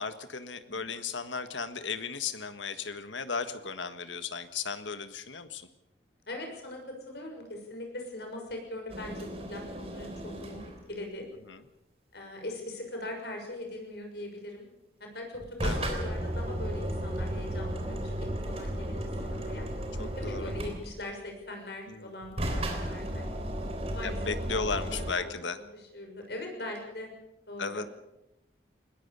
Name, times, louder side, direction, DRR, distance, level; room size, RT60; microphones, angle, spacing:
voice 1, 0.0-5.7 11.5-11.6 15.6-15.9 20.0-20.5 21.9-22.1 24.0-25.6 27.6-27.9, left 5 dB, 85° left, 10 dB, 1.6 m, -35 dB
voice 2, 6.3-11.2 12.1-14.6 15.0-19.7 20.2-23.3 23.9-27.1 27.5-27.8, left 1 dB, 60° left, 2 dB, 6.4 m, -41 dB
sound 1, 8.9-10.9 15.3-21.2 22.2-25.1, right 1 dB, 30° right, 3.6 m, -34 dB
20.5 x 20.0 x 6.9 m, 0.90 s
head